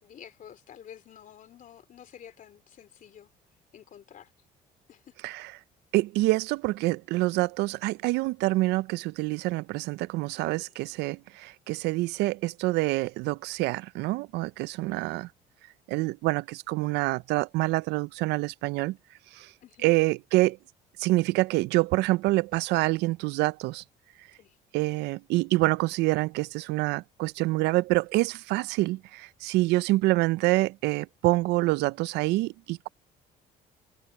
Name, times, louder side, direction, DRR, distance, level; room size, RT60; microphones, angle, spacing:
voice 1, 0.0-3.3 3.7-4.3 4.9-5.1 10.5-10.7 19.6-19.9 24.4-24.6, left 9 dB, 50° left, 3.2 m, -50 dB
voice 2, 5.9-15.3 15.9-19.0 19.3-19.5 19.8-20.6 21.0-23.8 24.7-32.9, right 20 dB, 90° right, 0.5 m, -26 dB
cardioid pair, 110°, 17 cm